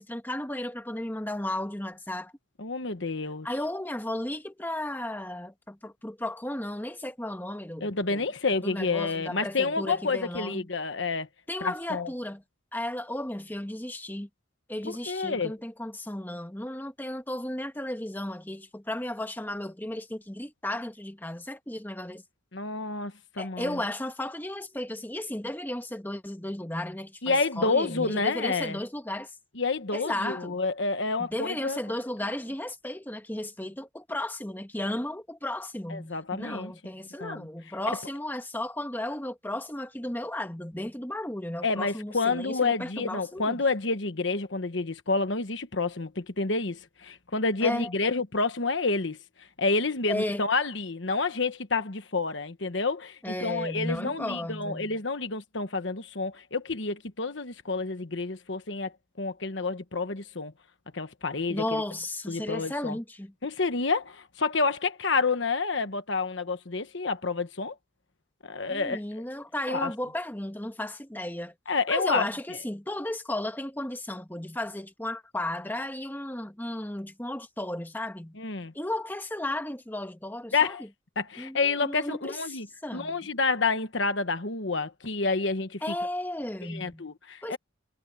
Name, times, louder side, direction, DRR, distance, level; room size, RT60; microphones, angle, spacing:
voice 1, 0.0-2.3 3.4-8.3 8.6-10.7 11.5-12.4 12.7-14.3 14.7-22.2 23.4-29.3 29.9-30.6 31.2-43.6 47.6-47.9 50.1-50.5 53.2-55.0 61.5-63.3 68.7-71.5 71.9-78.3 78.7-80.8 81.4-83.2 85.8-87.1 87.4-87.6, left 1 dB, 10° left, 1.2 m, -34 dB
voice 2, 2.6-3.5 7.8-11.3 11.6-12.1 14.8-15.5 22.5-23.7 27.2-28.8 29.6-31.8 35.9-36.7 37.2-37.5 41.6-49.2 49.6-58.9 59.2-60.5 60.9-61.8 62.3-62.9 63.4-67.7 68.4-69.0 69.7-69.9 71.7-72.3 78.4-78.7 80.5-80.8 81.2-82.7 82.9-85.8 86.7-87.6, left 4 dB, 65° left, 1.2 m, -29 dB
head